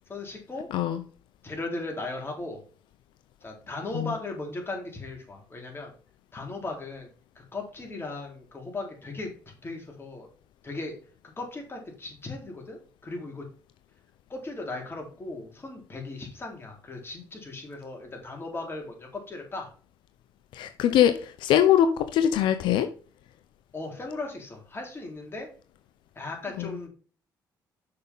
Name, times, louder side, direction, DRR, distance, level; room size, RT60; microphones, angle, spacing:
voice 1, 0.1-0.7 1.4-2.6 3.4-5.9 6.3-7.1 7.4-10.3 10.6-10.9 11.2-13.5 14.3-19.7 23.7-25.5 26.2-26.9, left 2 dB, 30° left, 1 dB, 3.8 m, -37 dB
voice 2, 0.7-1.0 3.9-4.1 20.5-22.9 26.6-26.8, left 10 dB, 85° left, 9 dB, 0.7 m, -22 dB
6.8 x 5.2 x 5.4 m, 0.40 s
cardioid pair, 80°, 8 cm